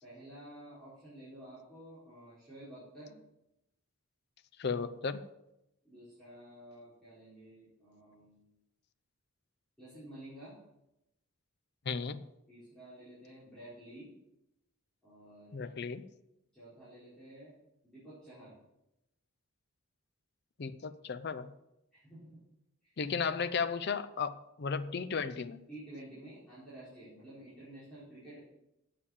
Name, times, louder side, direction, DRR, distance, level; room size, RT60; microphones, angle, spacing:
voice 1, 0.0-3.2 5.8-8.5 9.8-10.6 12.5-14.1 15.0-15.7 16.5-17.5 17.8-18.5 21.9-22.4 22.8-22.9 25.7-28.4, right 1 dB, 5° left, -13 dB, 4.3 m, -51 dB
voice 2, 4.6-5.2 11.9-12.2 15.5-16.0 20.6-21.5 23.0-25.6, left 5 dB, 50° left, 11 dB, 0.5 m, -35 dB
8.8 x 6.7 x 7.1 m, 0.88 s
head